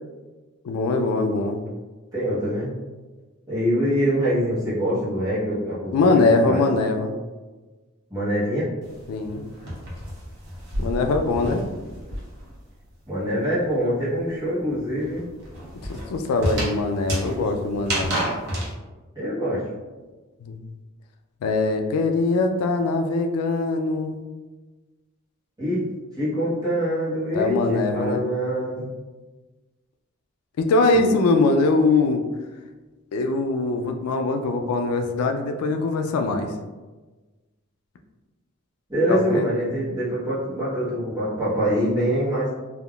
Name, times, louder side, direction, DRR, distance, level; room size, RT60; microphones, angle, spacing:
voice 1, 0.6-1.6 5.9-7.1 9.1-9.4 10.8-11.6 15.9-18.2 20.4-20.6 21.4-24.2 27.3-28.2 30.6-32.2 33.1-36.5 39.1-39.5, left 3 dB, 85° left, 5 dB, 0.3 m, -22 dB
voice 2, 2.1-2.7 3.5-6.6 8.1-8.7 13.1-15.2 19.1-19.6 25.6-25.8 26.2-28.9 30.9-31.1 38.9-42.5, equal, 15° right, -9 dB, 0.9 m, -24 dB
sound 1, 8.8-12.6 12.8-18.7, right 1 dB, 50° right, 0.8 m, -30 dB
3.5 x 2.3 x 2.3 m, 1.3 s
head